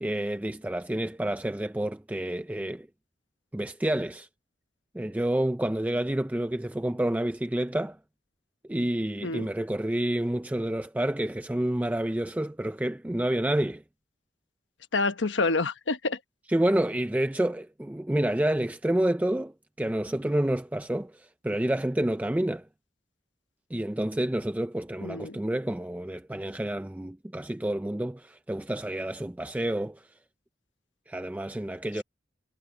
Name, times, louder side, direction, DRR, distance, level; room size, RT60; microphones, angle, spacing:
voice 1, 0.0-2.9 3.5-4.3 4.9-8.0 8.7-13.8 16.5-22.7 23.7-30.1 31.1-32.0, right 1 dB, 10° right, 0.4 m, -29 dB
voice 2, 14.9-16.2 25.0-25.4, left 3 dB, 90° left, 1.1 m, -27 dB
head